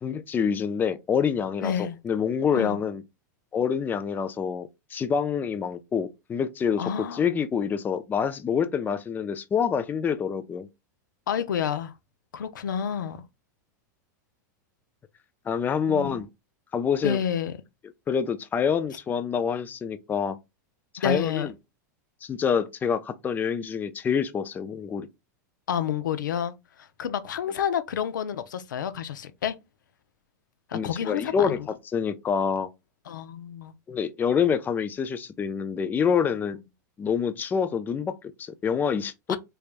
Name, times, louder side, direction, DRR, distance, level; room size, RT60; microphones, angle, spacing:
voice 1, 0.0-3.0 3.5-10.7 15.5-16.3 16.7-17.2 18.1-20.4 21.0-21.5 22.2-25.1 30.7-31.6 31.9-32.7 33.9-36.6 37.0-39.4, left 7 dB, 20° left, 0.4 m, -26 dB
voice 2, 1.6-2.0 2.5-2.8 6.8-7.2 11.3-11.9 12.3-13.2 15.9-16.1 17.0-17.5 21.0-21.5 25.7-29.5 30.7-31.7 33.1-33.7 39.3-39.4, left 8 dB, 90° left, 0.5 m, -29 dB
3.3 x 3.3 x 2.4 m
hypercardioid pair, 120°, 10 cm